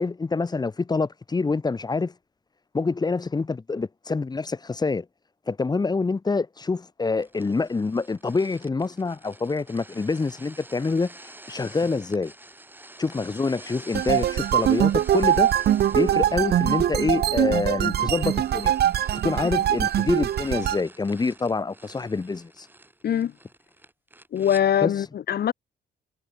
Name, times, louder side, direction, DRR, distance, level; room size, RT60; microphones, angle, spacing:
voice 1, 0.0-2.1 2.7-5.1 5.5-11.1 11.5-12.3 13.0-15.5 15.9-18.7 19.2-22.7 24.8-24.9, left 4 dB, 20° left, 0.8 m, -26 dB
sound 1, 7.2-24.6, right 1 dB, 10° right, 2.9 m, -48 dB
sound 2, 13.9-20.8, right 11 dB, 55° right, 0.6 m, -22 dB
voice 2, 24.3-25.5, left 9 dB, 55° left, 0.9 m, -22 dB
cardioid pair, 90°, 20 cm